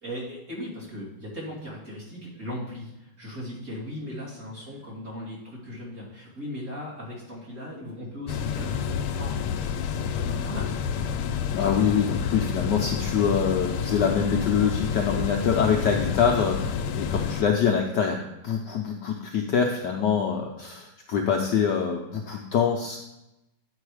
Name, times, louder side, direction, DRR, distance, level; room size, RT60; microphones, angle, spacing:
voice 1, 0.0-11.2, left 1 dB, 35° right, -7 dB, 3.0 m, -38 dB
sound 1, 8.3-17.4, left 7 dB, 90° left, 1.5 m, -29 dB
voice 2, 11.5-23.0, left 7 dB, 65° left, 1 dB, 1.1 m, -25 dB
9.5 x 4.7 x 4.8 m, 0.92 s
omnidirectional pair, 2.4 m